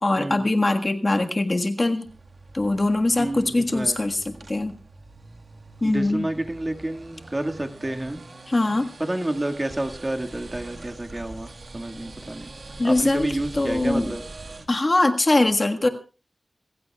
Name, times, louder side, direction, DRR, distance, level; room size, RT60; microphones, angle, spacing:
voice 1, 0.0-2.1 2.5-4.7 5.8-6.3 8.5-8.9 12.8-14.1 14.7-15.9, left 2 dB, 35° left, 4 dB, 1.6 m, -22 dB
sound 1, 2.0-14.7, right 2 dB, 60° right, 1.7 m, -43 dB
voice 2, 3.2-4.0 5.8-8.2 9.0-12.5 12.8-14.2, right 1 dB, 25° right, 5 dB, 1.9 m, -29 dB
27.5 x 15.0 x 2.4 m, 0.35 s
wide cardioid pair, 95°, 0 cm